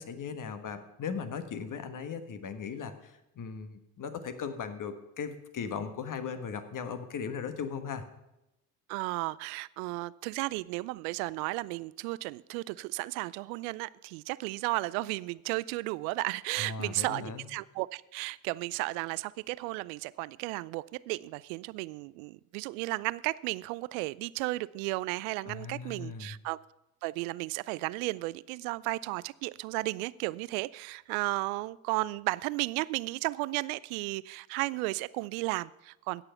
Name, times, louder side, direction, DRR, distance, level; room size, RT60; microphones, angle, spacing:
voice 1, 0.0-8.0 16.6-17.4 25.4-26.3, left 6 dB, 45° left, 9 dB, 1.5 m, -38 dB
voice 2, 8.9-26.6 27.0-36.2, right 21 dB, 70° right, 21 dB, 0.5 m, -34 dB
17.0 x 6.8 x 5.8 m, 0.92 s
hypercardioid pair, 55°, 43 cm